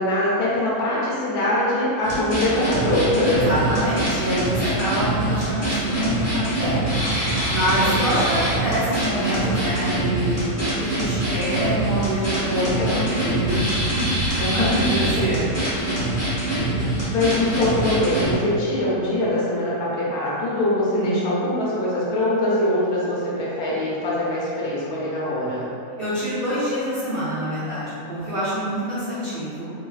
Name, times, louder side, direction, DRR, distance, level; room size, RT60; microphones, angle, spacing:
voice 1, 0.0-3.5 7.7-8.3 12.5-13.0 14.4-14.8 16.5-16.8 17.1-25.6 28.9-29.5, left 1 dB, 80° left, -7 dB, 1.1 m, -23 dB
sound 1, 2.0-18.3, right 1 dB, 20° left, 1.2 m, -24 dB
voice 2, 3.3-6.8 7.5-13.6 13.9-15.5 20.9-21.3 26.0-29.7, equal, 60° right, -11 dB, 0.6 m, -26 dB
3.4 x 2.2 x 2.3 m, 2.7 s
omnidirectional pair, 1.6 m